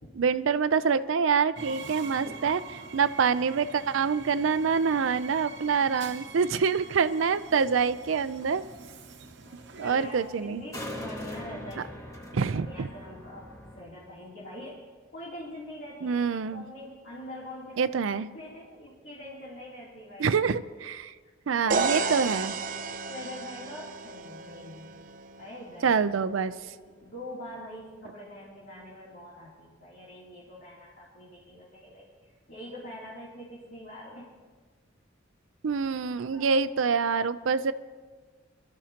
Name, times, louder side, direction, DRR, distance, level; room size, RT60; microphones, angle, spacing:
voice 1, 0.2-8.6 9.8-10.6 12.3-12.9 16.0-16.6 17.8-18.3 20.2-21.1 21.5-22.5 25.8-26.5 35.6-37.7, right 5 dB, 90° right, 13 dB, 0.5 m, -26 dB
Train, 1.6-10.7, right 4 dB, 65° right, 0.9 m, -45 dB
sound 1, 6.2-13.8, equal, 15° left, 1.5 m, -44 dB
voice 2, 9.7-14.9 15.1-16.2 16.5-17.9 18.3-20.3 21.6-22.4 23.1-24.9 25.4-26.0 26.3-34.3 36.3-36.6, left 1 dB, 65° left, -8 dB, 2.9 m, -44 dB
sound 2, 21.7-25.5, right 4 dB, 45° right, 0.6 m, -32 dB
23.5 x 13.0 x 2.9 m, 1.4 s
head